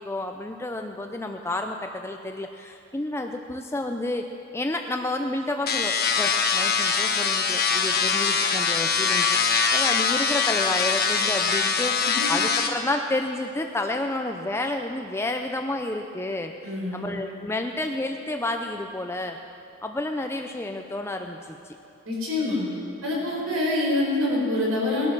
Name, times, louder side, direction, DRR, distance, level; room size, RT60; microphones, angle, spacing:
voice 1, 0.0-16.5 16.9-19.4 19.8-21.8, left 2 dB, 10° left, 4 dB, 0.5 m, -30 dB
sound 1, 5.7-12.7, left 5 dB, 50° left, 1.3 m, -23 dB
voice 2, 16.6-17.0 22.0-22.6 23.0-25.1, left 2 dB, 80° right, -3 dB, 4.5 m, -25 dB
19.5 x 11.5 x 6.1 m, 2.7 s
head